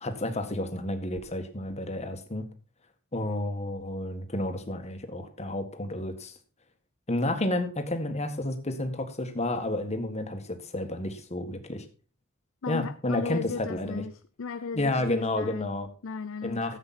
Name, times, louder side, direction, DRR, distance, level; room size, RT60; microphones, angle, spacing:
voice 1, 0.0-2.5 3.1-6.3 7.1-11.8 12.7-14.0 14.7-15.9 16.4-16.8, left 1 dB, 30° left, 1.7 m, -31 dB
voice 2, 12.6-15.7 16.0-16.8, left 5 dB, 65° left, 0.5 m, -37 dB
14.0 x 8.0 x 4.3 m
head